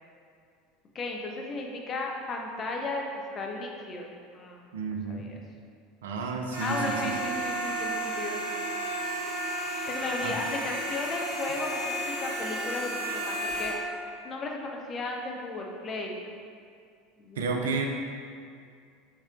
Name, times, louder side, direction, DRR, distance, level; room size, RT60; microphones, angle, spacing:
voice 1, 0.9-4.1 4.3-4.6 5.1-5.4 6.6-8.4 9.9-13.8 14.2-16.2 17.2-17.5, left 2 dB, 30° left, 1 dB, 0.6 m, -35 dB
voice 2, 4.7-5.3 6.0-7.1 10.2-10.4 17.4-17.8, right 4 dB, 65° right, 2 dB, 0.4 m, -31 dB
sound 1, 6.5-13.7, right 1 dB, 70° left, 1.1 m, -32 dB
5.2 x 4.2 x 2.3 m, 2.2 s
figure-of-eight pair, 75°, 0 cm